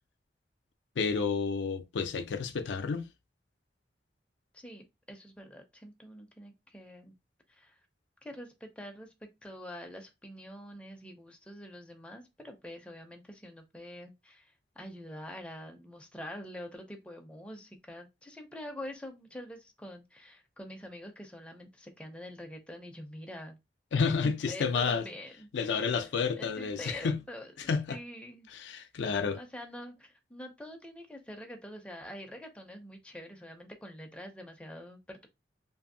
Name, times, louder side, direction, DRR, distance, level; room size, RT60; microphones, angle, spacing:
voice 1, 1.0-3.1 23.9-25.0 25.5-27.2 27.7-28.0 28.5-29.4, left 5 dB, 85° left, 0.4 m, -30 dB
voice 2, 4.5-7.1 7.5-7.8 8.2-23.6 24.2-26.1 26.4-28.5 29.3-35.3, left 1 dB, 5° left, 0.4 m, -46 dB
2.6 x 2.6 x 2.6 m
head